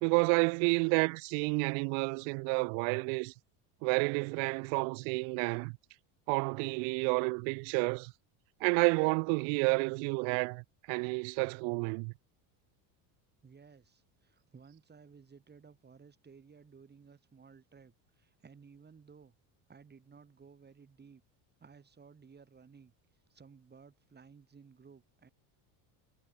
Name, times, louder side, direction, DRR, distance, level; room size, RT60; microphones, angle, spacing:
voice 1, 0.0-3.3 3.8-5.7 6.3-8.1 8.6-12.1, right 40 dB or more, 75° right, 0.6 m, -30 dB
voice 2, 13.4-19.3 19.7-21.2 21.6-22.9 23.3-25.3, right 5 dB, 20° right, 4.8 m, -57 dB
cardioid pair, 130°, 46 cm